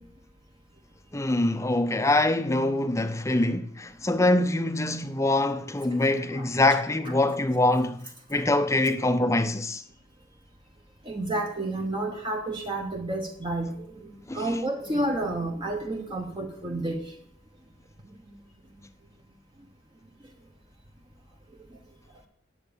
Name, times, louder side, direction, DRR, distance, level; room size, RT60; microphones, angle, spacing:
voice 1, 1.1-8.0 8.3-9.8 14.3-14.5, left 2 dB, 15° left, 0.6 m, -24 dB
voice 2, 11.0-17.2, right 1 dB, 25° right, 1.0 m, -30 dB
9.7 x 7.9 x 7.0 m
head